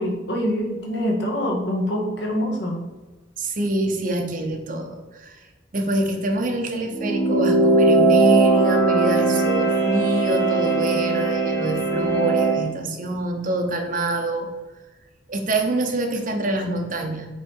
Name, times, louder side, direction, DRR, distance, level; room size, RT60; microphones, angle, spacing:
voice 1, 0.0-2.8, equal, 65° left, 0 dB, 1.6 m, -25 dB
voice 2, 3.4-5.3 5.7-14.5 15.3-17.3, right 1 dB, 45° right, 3 dB, 0.9 m, -25 dB
sound 1, 6.9-12.7, right 3 dB, 15° left, 1.0 m, -19 dB
8.2 x 3.4 x 4.6 m, 1.2 s
head